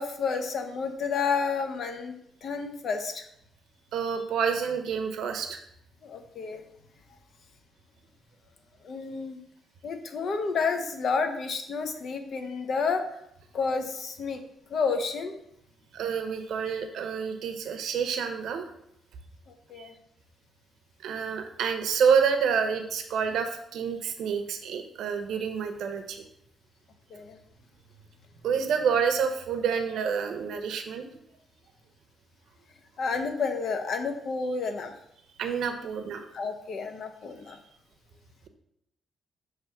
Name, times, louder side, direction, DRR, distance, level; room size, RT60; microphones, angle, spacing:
voice 1, 0.0-2.1 2.4-3.3 6.0-6.6 8.8-9.4 9.8-13.0 13.5-14.4 14.7-15.3 19.5-19.9 27.1-27.4 33.0-34.9 36.3-37.6, left 5 dB, 60° left, 6 dB, 0.8 m, -30 dB
voice 2, 3.9-5.6 15.9-18.7 19.8-19.9 21.0-26.2 28.4-31.1 35.4-36.2 37.5-37.6, right 6 dB, 80° right, 6 dB, 0.8 m, -28 dB
6.0 x 3.1 x 5.8 m, 0.75 s
cardioid pair, 105°, 0 cm